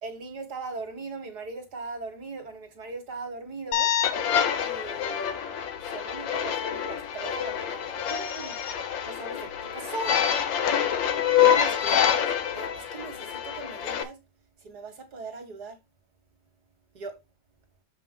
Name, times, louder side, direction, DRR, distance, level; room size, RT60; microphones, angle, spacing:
voice 1, 0.0-3.9 4.6-5.4 5.8-8.6 9.1-10.2 11.4-12.3 12.5-14.2 14.6-15.8 16.9-17.2, right 3 dB, 50° right, 2.1 m, -39 dB
sound 1, 3.7-14.0, left 9 dB, 70° left, 1.7 m, -26 dB
7.3 x 5.3 x 3.7 m
omnidirectional pair, 2.2 m